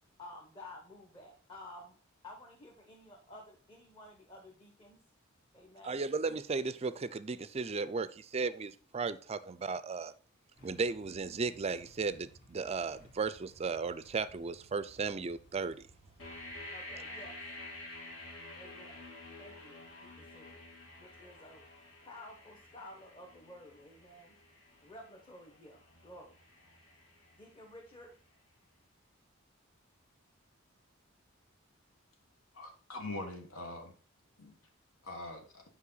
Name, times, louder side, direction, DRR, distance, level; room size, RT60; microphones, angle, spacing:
voice 1, 0.2-2.0 2.2-5.1 5.5-6.1 16.7-17.4 18.6-19.1 19.4-20.6 21.0-21.6 22.0-24.4 24.8-26.4 27.4-28.1, left 1 dB, 25° left, 1.1 m, -52 dB
voice 2, 5.8-10.1 10.6-15.9, right 4 dB, 30° right, 0.4 m, -35 dB
Motorcycle / Engine starting / Idling, 10.6-16.7, right 1 dB, 50° left, 2.5 m, -61 dB
sound 1, 16.2-28.0, left 2 dB, 65° left, 2.5 m, -50 dB
voice 3, 32.5-33.9 34.4-34.6 35.0-35.6, left 2 dB, 80° left, 1.4 m, -43 dB
8.4 x 5.3 x 4.0 m
head